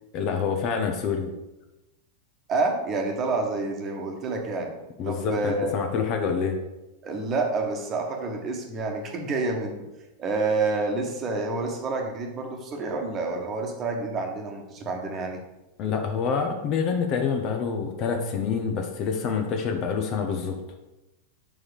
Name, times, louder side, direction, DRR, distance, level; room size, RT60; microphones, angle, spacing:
voice 1, 0.1-1.3 5.0-6.6 15.8-20.6, left 6 dB, 40° left, 4 dB, 1.0 m, -27 dB
voice 2, 2.5-4.7 5.0-5.9 7.0-9.9 10.2-15.4, right 3 dB, 30° right, 2 dB, 1.3 m, -28 dB
5.7 x 4.8 x 6.5 m, 0.99 s
figure-of-eight pair, 90°, 0 cm